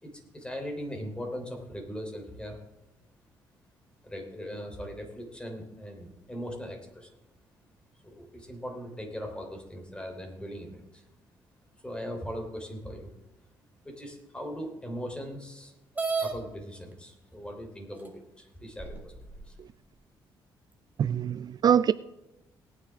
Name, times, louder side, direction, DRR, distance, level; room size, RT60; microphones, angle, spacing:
voice 1, 0.0-2.6 4.0-7.1 8.0-11.0 11.8-13.1 13.8-15.7 16.2-18.1 18.4-19.5, equal, 10° left, 3.4 m, -39 dB
sound 1, 16.0-16.3 17.3-17.4 18.1-18.2 18.8-19.5, right 4 dB, 20° right, 2.2 m, -31 dB
voice 2, 21.0-21.9, right 8 dB, 50° right, 0.4 m, -24 dB
18.5 x 9.6 x 3.6 m
cardioid pair, 85°, 9 cm